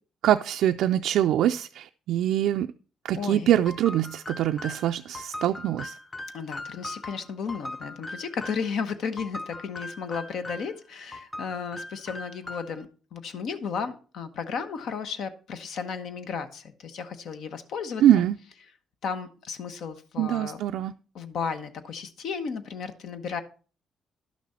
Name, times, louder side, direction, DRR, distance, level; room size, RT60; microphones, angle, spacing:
voice 1, 0.2-2.7 3.0-5.9 18.0-18.4 20.2-20.9, right 11 dB, 85° right, 0.3 m, -23 dB
voice 2, 3.2-3.5 6.3-12.9 13.1-18.2 19.0-20.6 21.1-23.4, left 6 dB, 75° left, 1.0 m, -34 dB
sound 1, 3.7-8.7 9.2-10.8 11.1-12.8, left 2 dB, 15° left, 0.8 m, -40 dB
11.0 x 6.1 x 4.2 m
cardioid pair, 90°, 0 cm